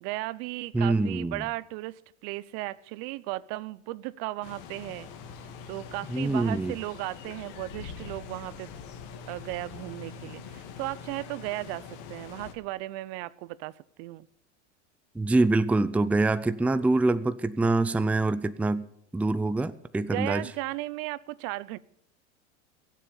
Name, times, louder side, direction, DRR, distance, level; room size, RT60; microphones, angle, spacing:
voice 1, 0.0-5.1 5.7-8.7 9.3-14.3 20.1-21.8, right 19 dB, 55° right, 20 dB, 0.7 m, -36 dB
voice 2, 0.7-1.4 6.1-6.8 15.1-18.8 19.1-20.4, right 2 dB, 5° right, 13 dB, 0.5 m, -25 dB
Open field winds summer ambience, 4.4-12.5, left 6 dB, 60° left, 2.6 m, -43 dB
22.0 x 7.7 x 6.8 m, 0.75 s
supercardioid pair, 115°, 35 cm